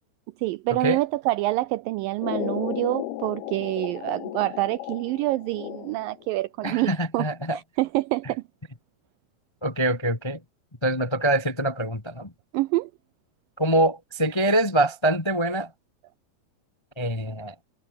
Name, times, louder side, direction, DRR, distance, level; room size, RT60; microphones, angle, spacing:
voice 1, 0.4-8.4 12.5-12.9, right 18 dB, 85° right, 2.0 m, -27 dB
sound 1, 2.2-6.2, left 14 dB, 75° left, 3.2 m, -34 dB
voice 2, 6.6-7.6 9.6-10.4 10.8-12.3 13.6-15.7 17.0-17.5, right 1 dB, 20° left, 0.7 m, -24 dB
omnidirectional pair, 4.6 m